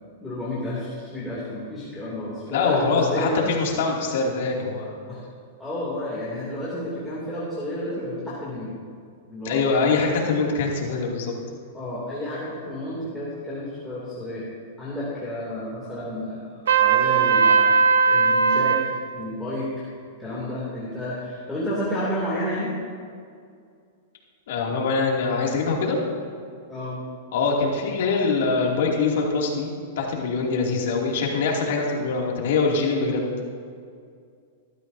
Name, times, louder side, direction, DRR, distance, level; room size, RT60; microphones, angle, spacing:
voice 1, 0.2-3.5 5.1-5.2 5.6-8.8 9.3-10.0 11.7-14.4 14.8-17.7 18.1-18.8 19.1-19.7 20.2-22.7 26.7-27.0 30.7-31.0, left 1 dB, 5° left, -9 dB, 2.8 m, -31 dB
voice 2, 2.5-5.0 9.4-11.3 24.5-26.0 27.3-33.3, left 4 dB, 65° left, -1 dB, 2.6 m, -23 dB
Trumpet, 16.7-18.9, right 6 dB, 85° right, 1.0 m, -18 dB
19.5 x 13.0 x 2.8 m, 2.2 s
supercardioid pair, 150°, 0 cm